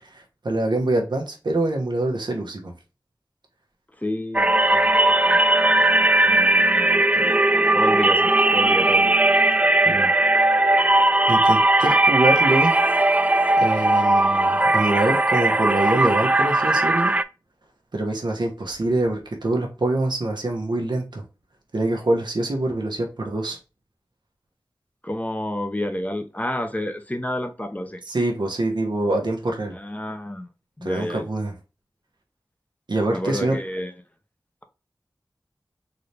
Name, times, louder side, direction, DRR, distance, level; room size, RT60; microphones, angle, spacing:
voice 1, 0.0-2.7 9.9-10.1 11.3-12.8 13.6-17.1 17.9-21.2 21.7-23.6 28.1-29.8 30.8-31.5 32.9-33.6, right 2 dB, 90° right, 1.0 m, -25 dB
voice 2, 4.0-7.3 7.7-9.2 25.0-28.0 29.7-30.5 30.8-31.3 33.1-33.9, left 1 dB, 20° left, 0.7 m, -30 dB
sound 1, 4.3-17.2, right 2 dB, 20° right, 0.3 m, -18 dB
3.9 x 2.8 x 3.2 m
wide cardioid pair, 40°, 7 cm